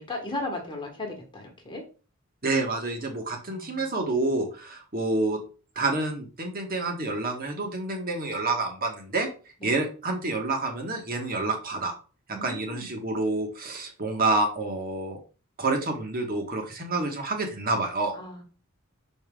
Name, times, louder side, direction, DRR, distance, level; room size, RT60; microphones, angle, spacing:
voice 1, 0.0-1.8 3.5-3.8 9.6-9.7 12.3-12.9 18.1-18.4, left 2 dB, 25° left, 2 dB, 1.5 m, -36 dB
voice 2, 2.4-5.4 5.7-9.3 9.6-11.9 12.4-15.2 15.6-18.1, right 2 dB, 45° right, 3 dB, 1.6 m, -28 dB
6.2 x 4.4 x 3.7 m, 0.36 s
head